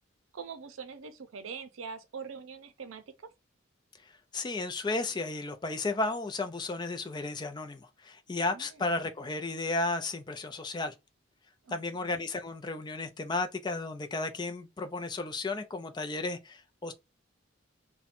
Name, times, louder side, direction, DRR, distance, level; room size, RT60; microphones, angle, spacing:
voice 1, 0.3-3.0 8.5-9.0 11.7-12.2, right 5 dB, 85° right, 0.5 m, -43 dB
voice 2, 4.3-10.9 11.7-16.9, left 3 dB, 20° left, 0.3 m, -33 dB
4.2 x 2.1 x 2.5 m
head